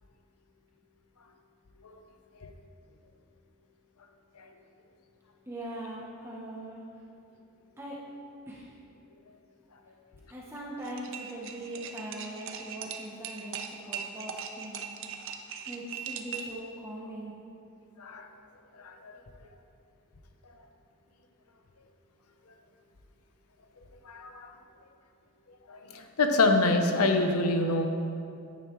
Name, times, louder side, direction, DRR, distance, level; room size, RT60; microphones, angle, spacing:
voice 1, 5.5-6.8 7.8-8.0 8.5-8.7 10.3-13.6 13.9-14.8 15.7-17.3, right 1 dB, 10° right, -5 dB, 0.9 m, -41 dB
sound 1, 10.8-16.6, right 7 dB, 55° right, 0.6 m, -39 dB
voice 2, 18.7-19.2 24.0-24.5 25.7-27.9, left 2 dB, 90° left, 5 dB, 0.8 m, -26 dB
9.7 x 9.2 x 3.2 m, 2.5 s
head